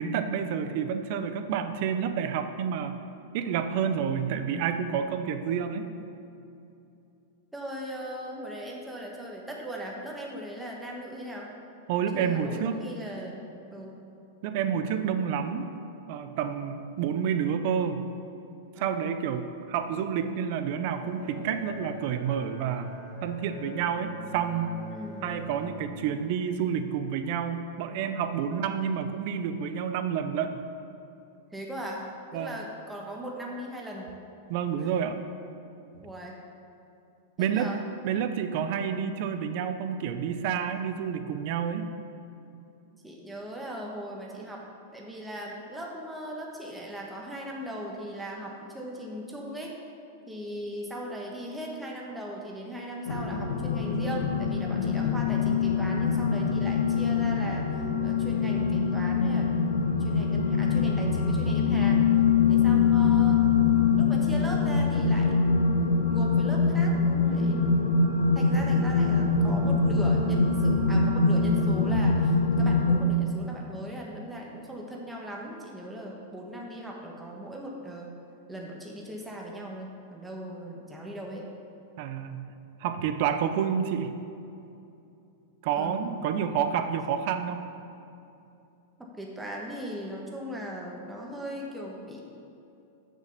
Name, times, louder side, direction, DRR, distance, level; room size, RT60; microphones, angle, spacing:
voice 1, 0.0-3.0 3.3-5.9 11.9-12.8 14.4-15.7 16.1-18.0 18.8-22.9 23.2-24.7 25.2-30.6 32.3-32.6 34.5-35.2 37.4-37.7 38.0-41.9 82.0-82.5 82.8-84.1 85.6-87.6, right 7 dB, 55° right, 9 dB, 0.7 m, -29 dB
voice 2, 7.5-11.5 12.1-13.4 13.7-14.0 18.7-19.1 24.9-25.3 31.5-34.1 34.8-34.9 36.0-36.4 37.4-37.8 38.1-38.3 43.0-49.8 50.3-57.7 58.0-59.6 60.0-62.1 62.5-63.5 64.0-65.4 66.1-68.0 68.3-78.2 78.5-81.5 85.7-86.2 89.0-92.3, equal, 5° right, -2 dB, 1.2 m, -38 dB
Bowed string instrument, 20.9-26.3, left 2 dB, 40° left, 1.4 m, -43 dB
sound 1, 53.1-73.0, left 5 dB, 85° left, 1.0 m, -24 dB
6.6 x 6.4 x 6.6 m, 2.7 s
hypercardioid pair, 125°, 0 cm